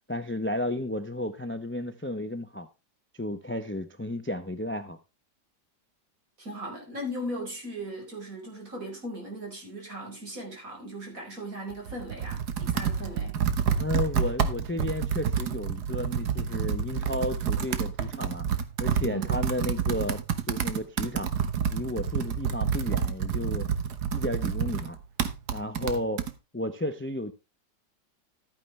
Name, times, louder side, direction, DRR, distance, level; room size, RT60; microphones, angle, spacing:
voice 1, 0.1-2.7 3.1-5.0 13.8-18.5 18.8-20.2 20.5-21.3 21.7-23.7 24.1-25.0 25.5-26.2 26.5-27.3, left 1 dB, 15° left, 0.4 m, -33 dB
voice 2, 6.4-13.4 19.0-19.3, right 1 dB, 50° right, 5.3 m, -38 dB
Computer keyboard, 11.7-26.3, right 7 dB, 70° right, 1.7 m, -29 dB
13.5 x 9.2 x 3.2 m
omnidirectional pair, 1.8 m